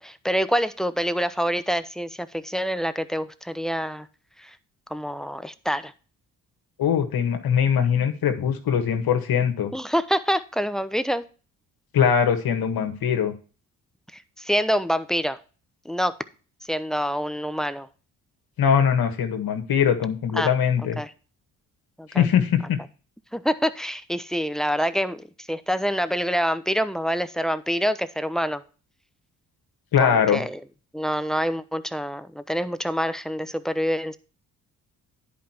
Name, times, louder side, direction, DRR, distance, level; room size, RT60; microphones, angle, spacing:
voice 1, 0.0-4.1 4.4-4.6 4.9-5.9 9.7-11.2 14.1-15.4 15.8-16.2 16.7-17.9 20.3-20.5 21.0-21.1 22.0-22.3 23.3-28.6 30.0-30.6 30.9-34.2, equal, ahead, 13 dB, 0.9 m, -26 dB
voice 2, 6.8-9.7 11.9-13.3 18.6-21.0 22.1-22.8 29.9-30.4, left 8 dB, 65° left, 7 dB, 1.7 m, -21 dB
10.5 x 5.3 x 4.4 m, 0.36 s
supercardioid pair, 50°, 38 cm